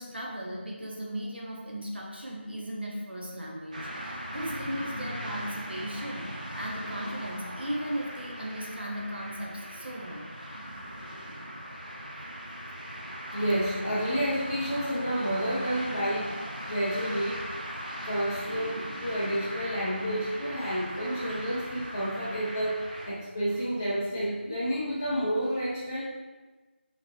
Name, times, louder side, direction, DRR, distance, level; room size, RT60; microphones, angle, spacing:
voice 1, 0.0-10.3, equal, 60° right, -2 dB, 1.0 m, -37 dB
sound 1, 3.7-23.1, equal, 40° right, 0.7 m, -39 dB
voice 2, 13.3-16.3 16.7-17.4 18.0-26.0, equal, 15° left, -12 dB, 0.8 m, -30 dB
4.5 x 4.0 x 2.9 m, 1.3 s
figure-of-eight pair, 180°, 6 cm